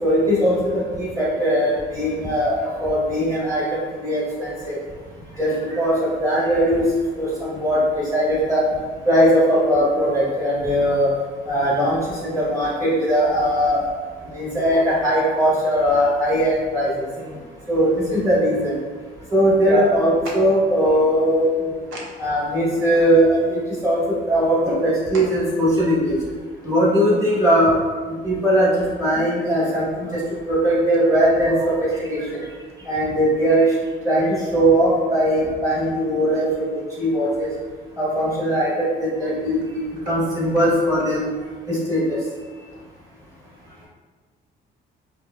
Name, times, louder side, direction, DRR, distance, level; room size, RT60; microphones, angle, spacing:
voice 1, 0.0-4.8 5.3-6.9 7.1-8.6 9.0-11.1 11.4-13.9 14.3-16.9 17.7-18.8 19.3-21.7 22.2-26.2 26.6-27.7 28.2-30.2 30.5-32.4 32.9-33.7 34.0-37.5 38.0-39.6 40.1-41.2 41.7-42.2, equal, 15° right, -8 dB, 1.4 m, -20 dB
voice 2, 19.6-19.9 21.9-22.0 25.1-25.2 26.4-26.5 43.7-43.9, right 2 dB, 75° right, -3 dB, 0.9 m, -29 dB
4.7 x 2.1 x 2.2 m, 1.4 s
cardioid pair, 90°, 20 cm